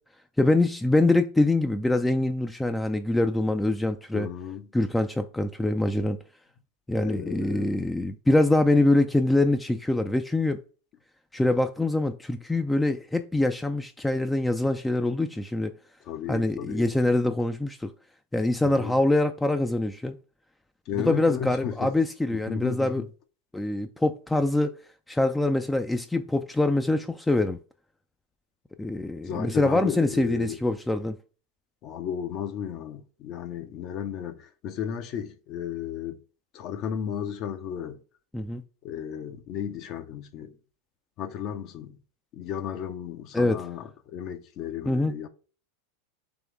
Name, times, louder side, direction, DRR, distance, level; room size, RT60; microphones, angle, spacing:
voice 1, 0.4-4.3 4.7-6.2 6.9-10.6 11.3-15.7 16.3-17.9 18.3-20.2 21.0-23.0 23.5-24.7 25.1-27.6 28.8-31.2 38.3-38.6 43.3-43.6 44.9-45.1, left 2 dB, 5° left, 0.3 m, -24 dB
voice 2, 4.1-4.7 7.0-7.8 16.0-16.9 18.6-19.0 20.9-21.9 22.3-23.1 29.2-30.6 31.8-36.2 36.5-38.0 38.8-40.5 41.2-42.0 42.3-45.3, left 9 dB, 50° left, 0.6 m, -34 dB
3.6 x 3.0 x 4.5 m
hypercardioid pair, 95°, 0 cm